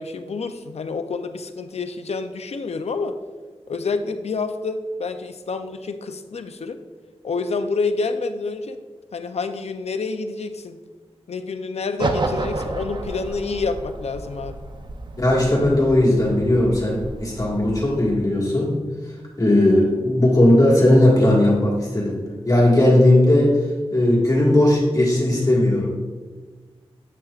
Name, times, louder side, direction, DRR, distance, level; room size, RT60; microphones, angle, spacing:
voice 1, 0.0-3.2 3.7-6.8 7.2-8.8 9.1-10.8 11.3-14.6, left 4 dB, 80° left, 9 dB, 0.4 m, -28 dB
sound 1, 12.0-18.1, right 2 dB, 45° right, 0.5 m, -31 dB
voice 2, 15.2-18.8 19.4-23.6 23.9-25.9, left 1 dB, 35° left, -5 dB, 1.6 m, -17 dB
7.8 x 5.9 x 2.4 m, 1.4 s
wide cardioid pair, 80°, 11 cm